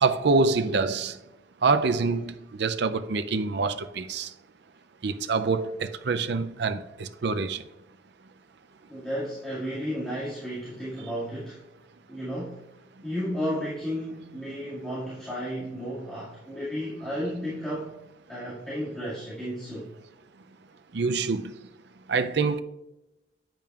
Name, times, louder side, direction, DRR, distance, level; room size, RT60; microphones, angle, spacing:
voice 1, 0.0-1.2 1.6-4.3 5.0-7.6 20.9-21.5 22.1-22.6, right 4 dB, 60° right, 0.5 m, -26 dB
voice 2, 8.9-11.6 12.1-12.6 13.0-18.0 18.3-19.9, equal, 5° left, 2.1 m, -33 dB
8.9 x 8.6 x 2.4 m
head